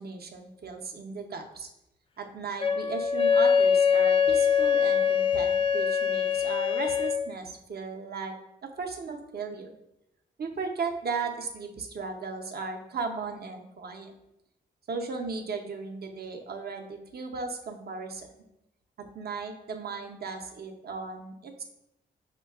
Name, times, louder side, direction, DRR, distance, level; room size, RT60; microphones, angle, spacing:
voice 1, 0.0-1.7 2.2-8.3 8.6-9.8 10.4-14.1 14.9-18.3 19.1-21.6, right 4 dB, 55° right, 3 dB, 0.6 m, -36 dB
Wind instrument woodwind instrument, 2.6-7.3, left 7 dB, 30° left, 0.3 m, -23 dB
5.5 x 2.2 x 2.3 m, 0.88 s
cardioid pair, 55°, 19 cm